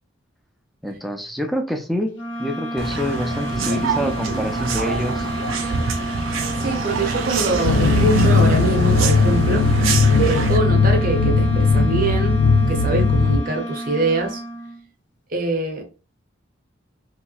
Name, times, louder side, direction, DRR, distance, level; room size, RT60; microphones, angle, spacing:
voice 1, 0.8-5.3, equal, ahead, 0.4 m, -26 dB
sound 1, 2.1-14.8, equal, 65° left, 0.8 m, -30 dB
sound 2, 2.8-10.6, right 4 dB, 85° right, 0.5 m, -25 dB
voice 2, 6.6-9.7 10.2-14.4 15.3-15.8, right 2 dB, 45° right, 0.7 m, -24 dB
sound 3, 7.6-13.4, left 3 dB, 85° left, 0.4 m, -18 dB
3.2 x 2.9 x 2.3 m
head